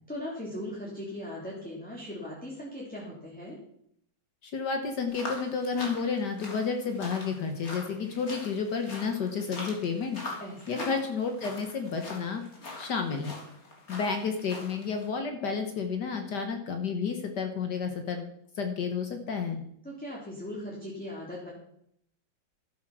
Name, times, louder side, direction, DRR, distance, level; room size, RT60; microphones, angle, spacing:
voice 1, 0.1-3.6 10.4-10.9 19.8-21.5, left 1 dB, 5° left, -4 dB, 2.5 m, -39 dB
voice 2, 4.4-10.2 10.7-12.4 12.8-13.3 13.9-18.3 18.6-19.6, left 5 dB, 65° left, 6 dB, 1.7 m, -31 dB
sound 1, 5.1-15.1, left 2 dB, 50° left, 3.1 m, -43 dB
12.0 x 8.3 x 6.1 m, 0.72 s
omnidirectional pair, 2.0 m